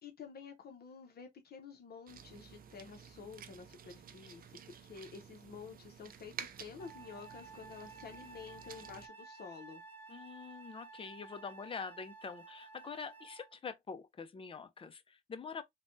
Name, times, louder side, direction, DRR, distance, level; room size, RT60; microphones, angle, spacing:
voice 1, 0.0-9.8, left 5 dB, 50° left, 0.8 m, -50 dB
sound 1, 2.1-9.1, right 8 dB, 45° right, 0.5 m, -52 dB
Wind instrument woodwind instrument, 6.8-13.6, right 4 dB, 10° left, 1.0 m, -53 dB
voice 2, 10.1-15.6, left 5 dB, 25° left, 0.5 m, -45 dB
3.2 x 2.2 x 2.6 m
cardioid pair, 90°, 20 cm